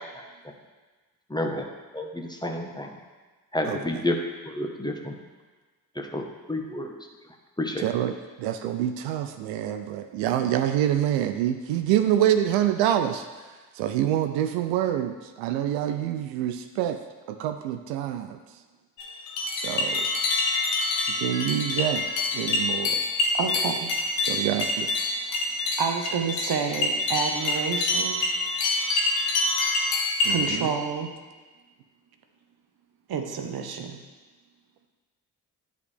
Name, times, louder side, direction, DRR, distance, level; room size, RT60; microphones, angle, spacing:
voice 1, 1.3-1.7 1.9-2.9 3.5-4.1 4.4-5.2 6.0-6.9 7.6-7.8, left 1 dB, 10° left, 2 dB, 1.1 m, -30 dB
voice 2, 3.6-4.0 7.8-13.3 13.7-17.0 17.3-18.4 19.5-20.1 21.1-22.1 22.3-23.0 24.2-24.9 30.2-30.7, right 11 dB, 75° right, 8 dB, 0.5 m, -26 dB
sound 1, 19.0-30.5, left 2 dB, 85° left, 1.0 m, -26 dB
voice 3, 23.4-23.9 25.8-28.2 30.2-31.1 33.1-34.0, right 6 dB, 55° right, 5 dB, 0.9 m, -29 dB
9.4 x 5.2 x 3.4 m, 1.3 s
hypercardioid pair, 40°, 46 cm